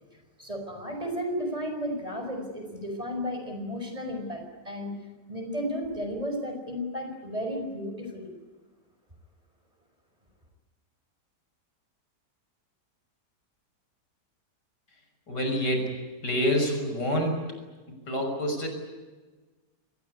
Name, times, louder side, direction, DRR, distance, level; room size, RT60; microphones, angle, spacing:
voice 1, 0.4-4.9 5.3-8.3, equal, 20° right, 4 dB, 5.2 m, -33 dB
voice 2, 15.3-15.9 16.2-17.4 17.9-18.7, equal, 75° left, 4 dB, 6.8 m, -27 dB
25.5 x 20.0 x 9.7 m, 1.3 s
omnidirectional pair, 1.8 m